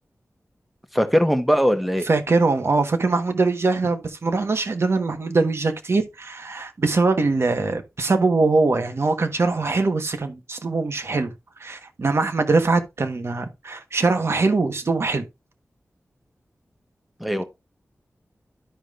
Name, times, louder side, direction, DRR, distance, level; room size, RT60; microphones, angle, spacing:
voice 1, 0.9-2.0 17.2-17.4, equal, ahead, 1.3 m, -20 dB
voice 2, 2.0-11.3 11.6-15.2, right 3 dB, 55° right, 1.3 m, -22 dB
13.0 x 5.0 x 2.5 m
wide cardioid pair, 85°, 5 cm